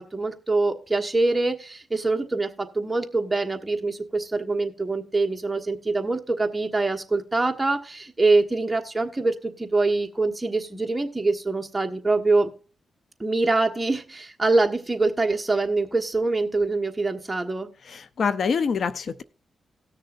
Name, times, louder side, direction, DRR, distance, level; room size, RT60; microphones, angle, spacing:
voice 1, 0.0-12.5 13.2-17.7, right 3 dB, 15° right, 3 dB, 1.3 m, -24 dB
voice 2, 17.9-19.2, left 5 dB, 60° left, 15 dB, 0.5 m, -25 dB
18.5 x 6.6 x 2.5 m, 0.39 s
cardioid pair, 80°, 0 cm